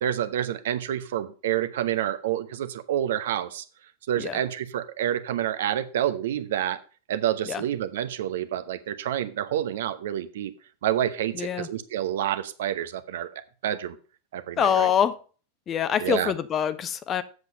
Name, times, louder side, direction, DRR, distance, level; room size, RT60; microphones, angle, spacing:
voice 1, 0.0-3.6 4.1-6.8 7.1-10.5 10.8-14.0 14.3-14.9 16.0-16.3, right 11 dB, 60° right, 12 dB, 0.8 m, -28 dB
voice 2, 11.4-11.7 14.6-15.2 15.7-17.2, left 8 dB, 25° left, 15 dB, 0.7 m, -24 dB
7.9 x 7.4 x 5.2 m, 0.38 s
figure-of-eight pair, 90°, 0 cm